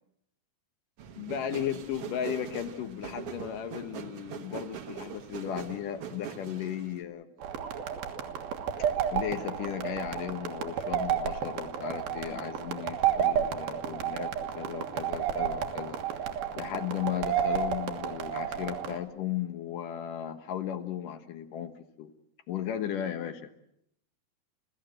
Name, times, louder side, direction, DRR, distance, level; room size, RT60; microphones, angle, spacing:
sound 1, 1.0-7.0, right 9 dB, 60° right, 1.6 m, -42 dB
voice 1, 1.2-7.3 9.1-16.0 16.6-22.1 22.5-23.5, left 10 dB, 70° left, 8 dB, 2.7 m, -35 dB
sound 2, 7.4-19.0, right 9 dB, 80° right, 3.4 m, -31 dB
29.0 x 15.0 x 7.8 m, 0.75 s
omnidirectional pair, 4.2 m